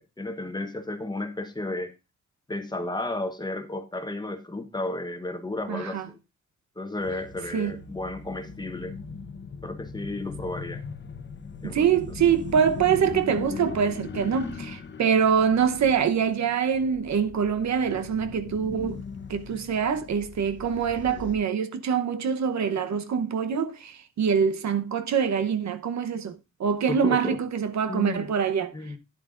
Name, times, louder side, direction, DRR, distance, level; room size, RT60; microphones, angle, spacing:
voice 1, 0.2-1.9 2.5-6.2 6.8-9.0 9.6-10.8 11.6-12.0 26.9-27.4 27.9-28.3 28.7-29.0, left 2 dB, 15° left, 1.1 m, -33 dB
voice 2, 5.7-6.0 7.5-7.7 11.6-19.0 19.3-28.7, right 7 dB, 65° right, 0.9 m, -25 dB
sound 1, 7.0-21.4, left 5 dB, 35° left, 1.0 m, -40 dB
11.5 x 10.0 x 2.5 m
cardioid pair, 115°, 30 cm